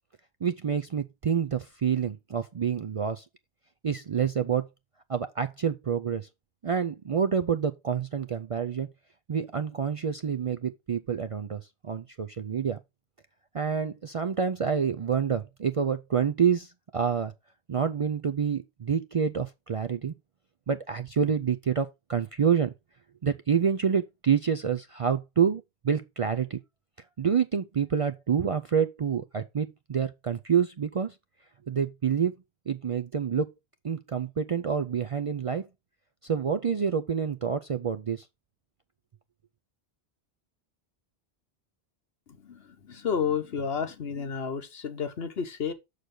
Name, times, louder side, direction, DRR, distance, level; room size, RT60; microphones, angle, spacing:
voice 1, 0.4-3.2 3.8-4.6 5.1-6.3 6.6-8.9 9.3-12.8 13.5-17.3 17.7-20.1 20.7-22.7 23.2-26.6 27.2-31.1 31.7-32.3 32.7-33.5 33.8-35.7 36.2-38.2, right 7 dB, 50° right, 0.4 m, -27 dB
voice 2, 42.4-45.7, left 6 dB, 75° left, 1.3 m, -31 dB
6.6 x 6.5 x 3.8 m
omnidirectional pair, 1.0 m